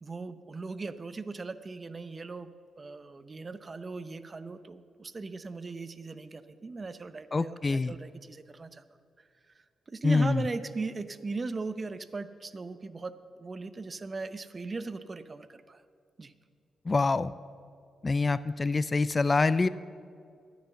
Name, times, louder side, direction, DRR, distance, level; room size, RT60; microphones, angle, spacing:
voice 1, 0.0-8.8 9.9-13.1 13.4-15.8 16.2-16.3, right 3 dB, 35° right, 13 dB, 0.7 m, -38 dB
voice 2, 7.3-7.9 10.0-10.5 16.9-17.3 18.0-19.7, left 3 dB, 30° left, 17 dB, 0.4 m, -25 dB
12.5 x 9.3 x 6.9 m, 2.3 s
cardioid pair, 75°, 0 cm